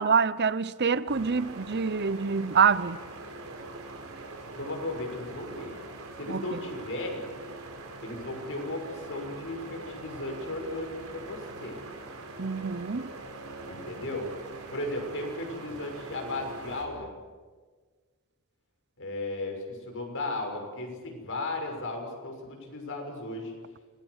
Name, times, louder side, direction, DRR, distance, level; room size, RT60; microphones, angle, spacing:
voice 1, 0.0-3.0 6.3-6.6 12.4-13.1, right 6 dB, 50° right, 0.8 m, -26 dB
sound 1, 1.1-16.8, right 2 dB, 70° right, 5.2 m, -43 dB
voice 2, 4.5-5.8 6.2-7.2 8.0-11.8 13.7-14.3 14.7-17.1 19.0-23.5, left 2 dB, 60° left, 6.2 m, -35 dB
28.5 x 20.5 x 8.2 m
head